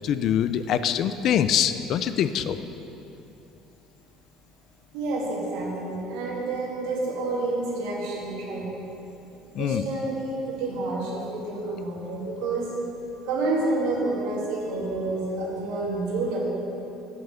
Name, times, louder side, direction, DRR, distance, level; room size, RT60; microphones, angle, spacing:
voice 1, 0.0-2.6 9.5-9.8, left 9 dB, 50° left, 12 dB, 0.4 m, -24 dB
voice 2, 4.9-8.7 9.5-12.7 13.2-16.4, right 2 dB, 80° right, -4 dB, 2.4 m, -29 dB
9.3 x 5.5 x 6.8 m, 3.0 s
cardioid pair, 135°, 0 cm